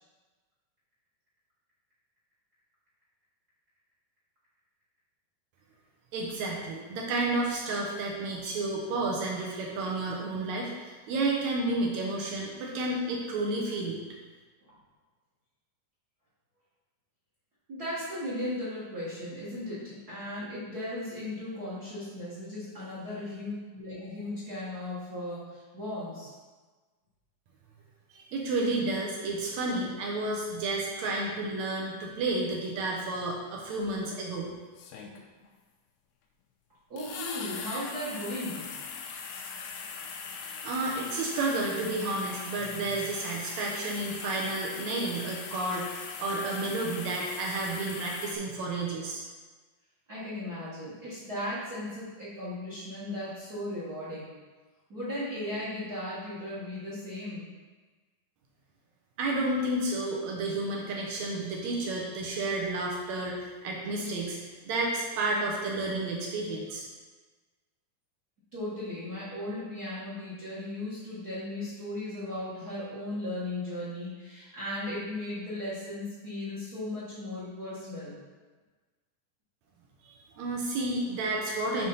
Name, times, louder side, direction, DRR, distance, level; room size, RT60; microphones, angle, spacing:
voice 1, 6.1-14.0 28.1-34.5 40.6-49.2 59.2-64.4 64.6-66.8 80.0-81.9, right 2 dB, 80° right, -2 dB, 1.7 m, -31 dB
voice 2, 17.7-26.3 36.9-38.7 50.1-54.4 54.9-57.4 68.5-78.2, left 1 dB, 50° right, -9 dB, 1.1 m, -36 dB
sound 1, 33.8-33.9 34.8-35.5 37.0-48.4, left 5 dB, 85° left, 2.5 m, -40 dB
7.4 x 3.8 x 5.5 m, 1.3 s
omnidirectional pair, 4.4 m